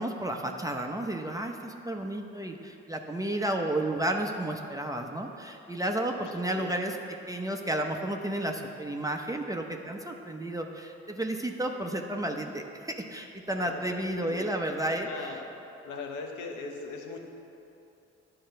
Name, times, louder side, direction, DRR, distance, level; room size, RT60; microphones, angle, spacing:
voice 1, 0.0-7.0 7.3-15.3, right 1 dB, 10° right, 2 dB, 0.7 m, -32 dB
voice 2, 6.2-6.9 13.6-13.8 14.2-14.5 15.0-15.4 15.8-17.2, left 4 dB, 85° left, 3 dB, 0.9 m, -40 dB
10.0 x 3.9 x 5.6 m, 2.8 s
supercardioid pair, 50°, 30 cm